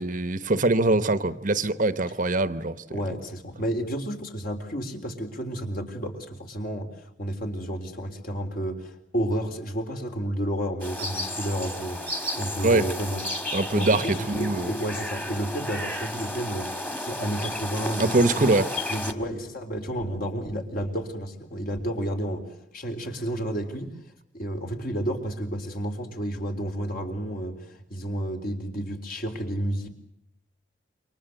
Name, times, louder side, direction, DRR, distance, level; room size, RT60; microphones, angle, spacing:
voice 1, 0.0-3.0 12.6-12.9 13.5-14.7 18.0-18.7, right 2 dB, 45° right, 1.0 m, -23 dB
voice 2, 2.9-13.3 13.7-18.5 18.9-24.0 24.3-29.9, right 1 dB, 50° left, 3.7 m, -31 dB
sound 1, 10.8-19.1, left 1 dB, 10° left, 2.0 m, -33 dB
28.5 x 25.0 x 7.9 m
head